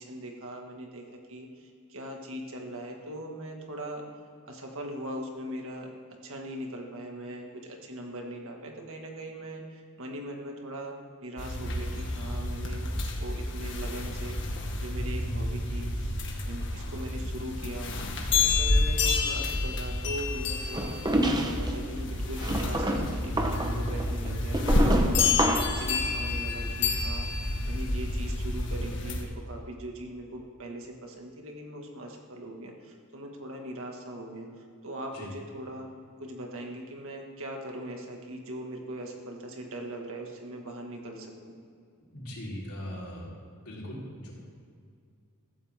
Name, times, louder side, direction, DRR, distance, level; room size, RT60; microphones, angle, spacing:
voice 1, 0.0-4.1 4.4-5.9 6.2-11.0 11.2-16.2 16.5-17.9 18.3-21.0 21.4-34.5 34.8-35.9 36.2-41.6, right 1 dB, 65° right, 1 dB, 2.0 m, -40 dB
sound 1, 11.4-29.2, left 2 dB, 55° left, 1.7 m, -29 dB
sound 2, 20.7-21.7 22.4-25.8, right 1 dB, 20° right, 1.0 m, -28 dB
voice 2, 42.1-43.3 43.6-44.3, equal, 75° left, -5 dB, 4.0 m, -39 dB
15.5 x 14.5 x 3.7 m, 2.3 s
head